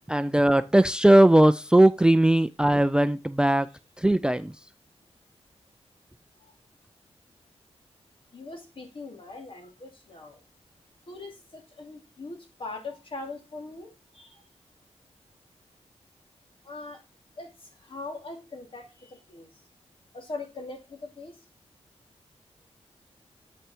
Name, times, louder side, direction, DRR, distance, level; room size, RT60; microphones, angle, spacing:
voice 1, 0.1-3.7 4.0-4.5, right 1 dB, 10° right, 0.4 m, -19 dB
voice 2, 8.3-10.4 11.1-14.4 16.6-17.0 17.4-19.6 20.1-21.4, left 3 dB, 55° left, 2.6 m, -41 dB
8.0 x 4.8 x 4.4 m
cardioid pair, 70°, 11 cm